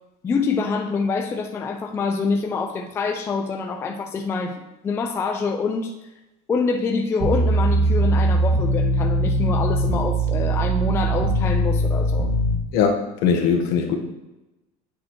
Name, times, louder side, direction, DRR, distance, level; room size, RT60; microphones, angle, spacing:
voice 1, 0.2-5.9 6.5-12.3, left 4 dB, 15° left, 4 dB, 0.3 m, -25 dB
sound 1, 7.2-12.5, right 1 dB, 75° right, 2.2 m, -21 dB
voice 2, 12.7-13.9, left 6 dB, 60° left, 2 dB, 1.2 m, -20 dB
8.5 x 6.3 x 3.0 m, 1.0 s
cardioid pair, 175°, 18 cm